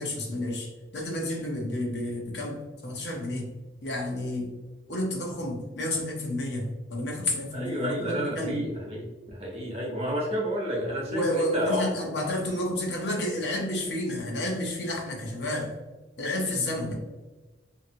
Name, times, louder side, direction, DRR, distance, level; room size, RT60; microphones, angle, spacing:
voice 1, 0.0-3.4 3.8-4.5 4.9-8.6 11.1-15.7 16.2-16.9, left 1 dB, 70° left, 0 dB, 0.8 m, -30 dB
voice 2, 7.5-11.9, equal, 35° right, -3 dB, 0.9 m, -30 dB
2.8 x 2.8 x 2.6 m, 1.2 s
head